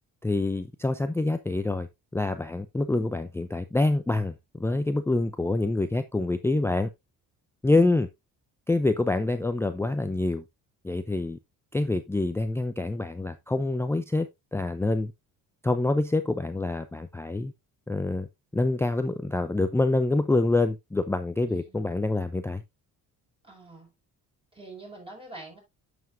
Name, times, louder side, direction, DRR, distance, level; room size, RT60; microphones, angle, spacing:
voice 1, 0.2-1.9 2.1-4.3 4.6-6.9 7.6-8.1 8.7-10.4 10.8-11.4 11.7-14.3 14.5-15.1 15.6-17.5 17.9-18.3 18.5-22.6, left 2 dB, 5° left, 0.5 m, -26 dB
voice 2, 21.4-21.8 23.4-23.9 24.5-25.6, right 2 dB, 15° right, 5.3 m, -45 dB
9.3 x 7.0 x 2.6 m
cardioid pair, 125°, 35 cm